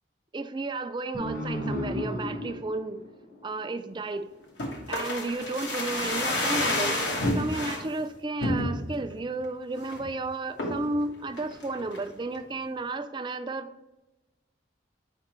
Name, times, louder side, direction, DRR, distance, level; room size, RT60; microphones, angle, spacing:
voice 1, 0.3-3.0 3.4-4.3 4.9-7.0 7.3-13.7, right 2 dB, 25° right, 9 dB, 0.3 m, -33 dB
sound 1, 1.1-4.3, equal, 50° left, 1.0 m, -34 dB
sound 2, 4.6-7.8 8.4-9.0 9.4-9.5 9.8-10.1 10.6-10.9 11.4-12.1 12.3-12.4, left 1 dB, 80° left, 1.4 m, -29 dB
8.4 x 5.1 x 3.0 m, 1.0 s
head